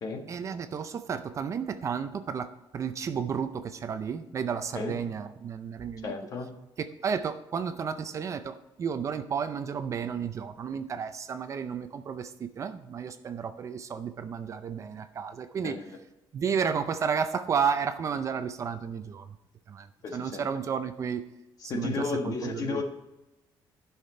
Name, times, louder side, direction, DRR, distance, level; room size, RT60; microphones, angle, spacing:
voice 1, 0.3-6.1 6.8-15.8 16.3-19.3 19.7-19.9 20.1-21.2 21.7-22.8, right 6 dB, 35° right, 10 dB, 0.5 m, -32 dB
voice 2, 6.0-6.5 15.6-15.9 20.0-20.4 21.6-22.8, left 4 dB, 40° left, 4 dB, 1.4 m, -33 dB
11.5 x 5.8 x 4.4 m, 0.96 s
cardioid pair, 160°, 9 cm